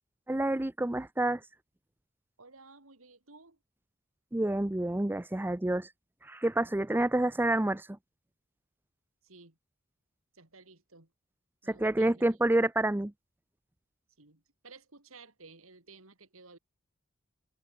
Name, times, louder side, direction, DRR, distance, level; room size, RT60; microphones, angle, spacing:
voice 1, 0.3-1.4 4.3-5.9 6.2-7.9 11.7-13.1, right 1 dB, 10° right, 0.5 m, -28 dB
voice 2, 2.4-3.6 9.2-9.6 10.3-11.1 11.6-12.3 14.2-16.6, right 3 dB, 75° right, 3.8 m, -55 dB
head